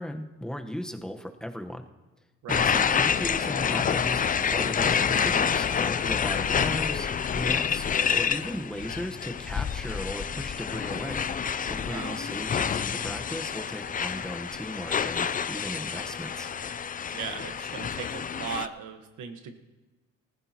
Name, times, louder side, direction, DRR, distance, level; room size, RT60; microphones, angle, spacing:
voice 1, 0.0-1.8 2.5-7.1 7.3-11.3 11.7-16.5, equal, ahead, 5 dB, 1.1 m, -36 dB
sound 1, 2.5-18.7, left 7 dB, 30° left, 0.4 m, -28 dB
voice 2, 17.1-19.5, right 6 dB, 80° right, 6 dB, 1.4 m, -37 dB
19.5 x 14.5 x 3.0 m, 1.2 s
cardioid pair, 90°, 30 cm